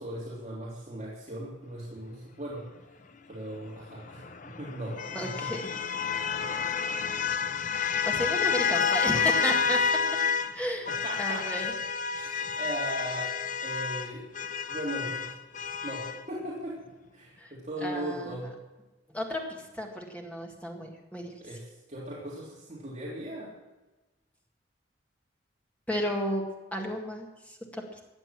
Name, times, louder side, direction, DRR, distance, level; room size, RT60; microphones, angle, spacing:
voice 1, 0.0-2.6 3.3-4.3 4.6-5.5 10.9-11.6 12.2-13.3 13.6-14.2 14.7-15.3 15.8-16.8 17.1-18.4 21.4-23.5, right 1 dB, 35° right, -7 dB, 3.6 m, -38 dB
sound 1, 3.9-10.5 10.9-16.2, left 6 dB, 45° left, 0.7 m, -29 dB
voice 2, 5.1-5.7 8.0-9.8 10.5-10.9 11.2-11.7 17.4-17.5 17.8-18.3 19.1-21.3 25.9-26.4 26.7-28.0, equal, 10° left, 0 dB, 1.8 m, -33 dB
15.0 x 9.7 x 7.5 m, 1.1 s
head